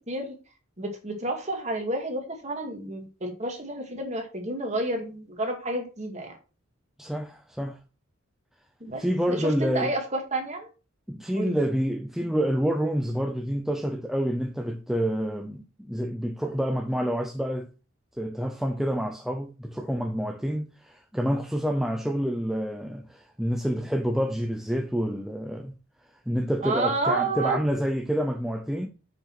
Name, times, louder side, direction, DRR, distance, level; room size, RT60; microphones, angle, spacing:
voice 1, 0.8-6.3 8.8-10.7 11.3-11.5 26.6-27.6, right 2 dB, 35° right, 2.1 m, -30 dB
voice 2, 7.0-7.8 9.0-9.9 11.1-17.7 18.2-25.7 26.3-28.9, equal, ahead, 0.7 m, -28 dB
6.8 x 5.4 x 5.9 m
head